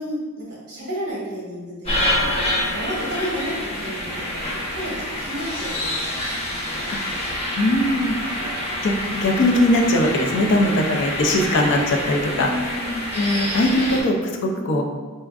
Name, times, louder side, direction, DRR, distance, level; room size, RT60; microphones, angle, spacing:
voice 1, 0.0-2.1 2.6-6.1 6.8-6.9 8.4-8.5 10.4-10.6 10.8-11.0 11.9-13.0 13.8-14.1 14.4-14.8, equal, 50° right, -7 dB, 1.0 m, -32 dB
sound 1, 1.8-14.0, left 1 dB, 25° left, 0.8 m, -27 dB
voice 2, 7.5-8.2 8.8-12.7 13.1-14.8, left 1 dB, 55° left, 2 dB, 0.4 m, -20 dB
4.2 x 3.5 x 2.3 m, 1.4 s
head